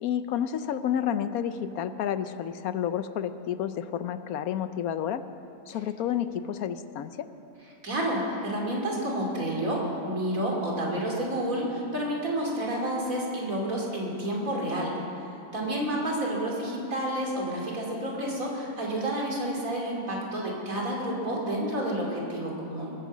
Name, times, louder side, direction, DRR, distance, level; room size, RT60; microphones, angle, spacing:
voice 1, 0.0-5.2 5.7-7.3, left 9 dB, 70° left, 12 dB, 1.0 m, -30 dB
voice 2, 7.8-15.0 15.5-22.9, right 1 dB, 50° right, -2 dB, 3.3 m, -30 dB
20.0 x 9.4 x 7.3 m, 2.8 s
omnidirectional pair, 1.8 m